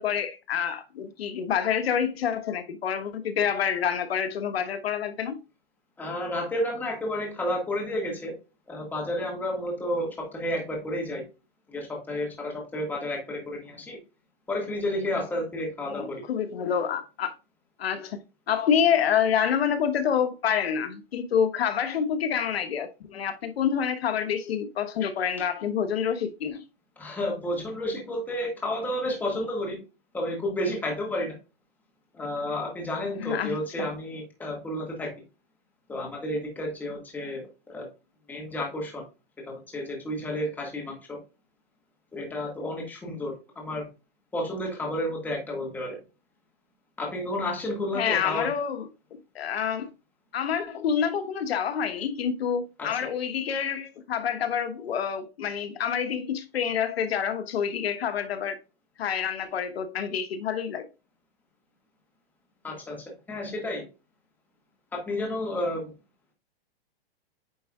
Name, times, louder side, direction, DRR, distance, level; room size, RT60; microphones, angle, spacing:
voice 1, 0.0-5.4 15.8-17.3 17.8-18.2 18.5-26.6 33.2-33.9 47.9-49.9 50.3-58.6 59.0-60.9, left 8 dB, 75° left, 1.1 m, -27 dB
voice 2, 6.0-8.3 8.7-11.2 11.7-14.0 14.5-16.0 27.0-29.8 30.1-31.3 32.1-35.1 35.9-37.9 38.3-39.0 39.5-41.2 42.1-43.9 44.3-46.0 47.0-48.5 52.8-52.9 62.6-63.8 64.9-65.9, left 1 dB, 5° left, 1.6 m, -31 dB
9.2 x 4.5 x 2.3 m
hypercardioid pair, 165°, 31 cm